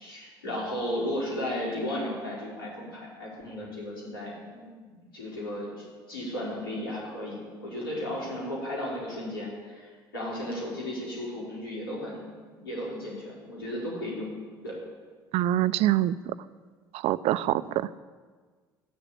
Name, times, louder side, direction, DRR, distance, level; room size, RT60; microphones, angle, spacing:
voice 1, 0.0-12.3 12.6-14.3 14.6-14.7 17.5-17.6, left 1 dB, 90° left, -6 dB, 5.1 m, -35 dB
voice 2, 15.3-16.3 16.9-17.9, right 13 dB, 60° right, 16 dB, 0.5 m, -25 dB
13.5 x 6.8 x 8.6 m, 1.5 s
hypercardioid pair, 60°, 12 cm